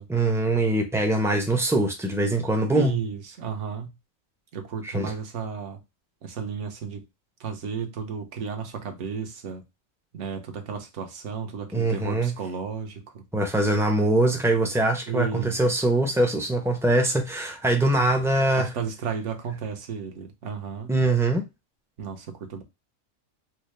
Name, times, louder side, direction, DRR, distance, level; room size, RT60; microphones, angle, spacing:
voice 1, 0.1-2.9 4.8-5.1 11.7-12.3 13.3-18.7 20.9-21.4, right 2 dB, 5° right, 0.4 m, -23 dB
voice 2, 2.7-4.0 4.5-5.8 6.2-7.0 7.4-9.6 10.1-13.2 15.1-15.6 18.6-20.9 22.0-22.6, right 6 dB, 65° right, 1.1 m, -33 dB
4.5 x 2.0 x 3.1 m
omnidirectional pair, 1.4 m